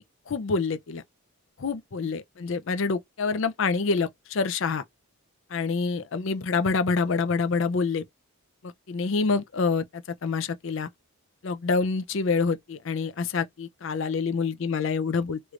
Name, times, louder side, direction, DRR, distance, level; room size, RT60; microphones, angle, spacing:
voice 1, 0.3-1.0 1.6-4.8 5.5-8.0 8.6-10.9 11.4-15.4, left 4 dB, 60° left, 0.5 m, -27 dB
3.2 x 3.1 x 2.4 m
head